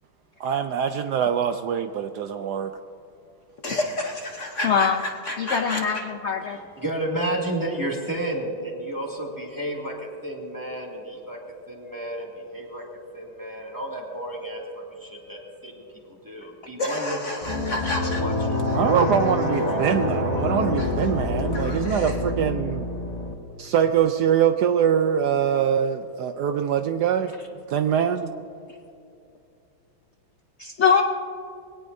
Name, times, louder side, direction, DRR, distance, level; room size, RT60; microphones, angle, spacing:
voice 1, 0.4-2.7 18.7-22.9 23.6-27.3 27.7-28.3, right 8 dB, 70° right, 8 dB, 1.0 m, -23 dB
voice 2, 3.6-6.0 16.8-18.2 18.7-18.8 20.8-20.9 21.5-22.1, left 1 dB, 50° left, 2 dB, 1.1 m, -30 dB
voice 3, 4.6-5.0 5.4-6.6 30.6-31.0, left 6 dB, 75° left, 5 dB, 0.6 m, -22 dB
voice 4, 6.5-11.4 11.7-12.8 13.1-14.6 14.9-17.2 17.4-17.8 18.0-19.0 19.3-19.8, right 1 dB, 10° right, -2 dB, 2.2 m, -32 dB
sound 1, 17.4-23.3, left 2 dB, 25° left, 1.3 m, -26 dB
21.5 x 18.0 x 2.7 m, 2.6 s
omnidirectional pair, 2.0 m